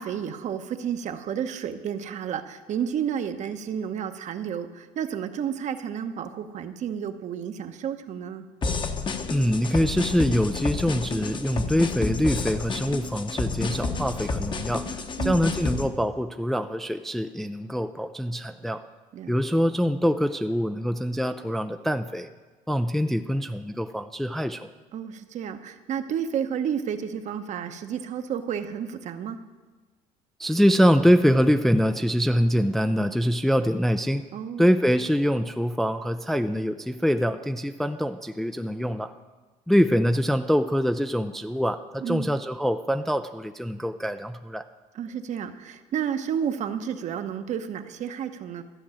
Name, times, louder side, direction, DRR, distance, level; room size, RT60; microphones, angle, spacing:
voice 1, 0.0-8.4 15.2-15.5 19.1-19.4 24.9-29.4 34.3-34.7 42.0-42.3 44.9-48.6, right 8 dB, 50° right, 9 dB, 0.9 m, -31 dB
sound 1, 8.6-15.9, left 4 dB, 30° left, 1.0 m, -30 dB
voice 2, 9.3-14.9 15.2-18.8 19.3-22.3 22.7-24.7 30.4-34.3 34.6-39.1 39.7-44.6, equal, ahead, 9 dB, 0.4 m, -24 dB
13.0 x 6.1 x 8.8 m, 1.3 s
cardioid pair, 120°, 15 cm